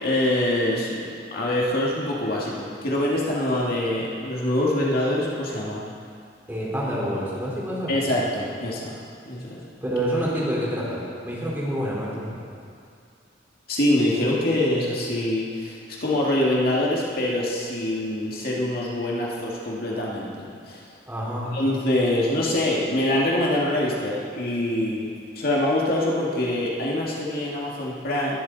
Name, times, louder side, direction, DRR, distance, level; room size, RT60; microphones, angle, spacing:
voice 1, 0.0-5.8 7.9-9.0 9.3-9.7 13.7-20.9 21.5-25.1 25.3-28.4, left 1 dB, 55° left, -4 dB, 2.2 m, -24 dB
voice 2, 6.5-7.9 9.8-12.4 21.1-21.5, equal, 10° right, -7 dB, 4.2 m, -27 dB
21.0 x 12.0 x 4.1 m, 2.4 s
head